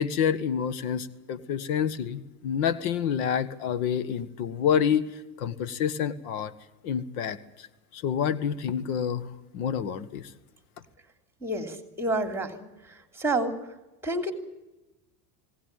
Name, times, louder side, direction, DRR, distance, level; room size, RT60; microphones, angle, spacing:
voice 1, 0.0-6.5 6.8-7.7 7.9-9.3 9.5-10.3, left 8 dB, 80° left, 14 dB, 1.6 m, -28 dB
voice 2, 11.4-12.6 13.2-13.6 14.0-14.3, right 2 dB, 5° right, 7 dB, 3.0 m, -28 dB
20.5 x 17.5 x 9.0 m, 1.0 s
supercardioid pair, 120°, 43 cm